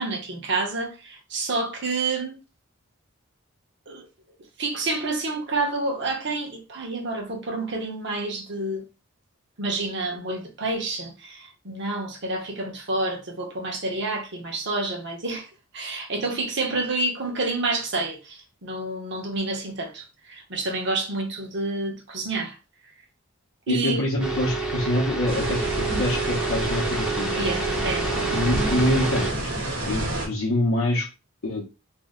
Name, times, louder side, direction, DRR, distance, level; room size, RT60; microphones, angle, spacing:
voice 1, 0.0-2.4 3.9-4.0 4.6-8.8 9.6-22.6 23.7-24.0 27.3-28.1, right 2 dB, 55° right, 0.8 m, -29 dB
voice 2, 23.7-27.4 28.3-29.5 29.9-31.1 31.4-31.6, left 1 dB, 70° left, 0.6 m, -25 dB
sound 1, 24.2-29.3, right 3 dB, 5° right, 0.5 m, -28 dB
sound 2, 25.3-30.3, right 1 dB, 70° right, 1.1 m, -29 dB
2.7 x 2.1 x 3.4 m
head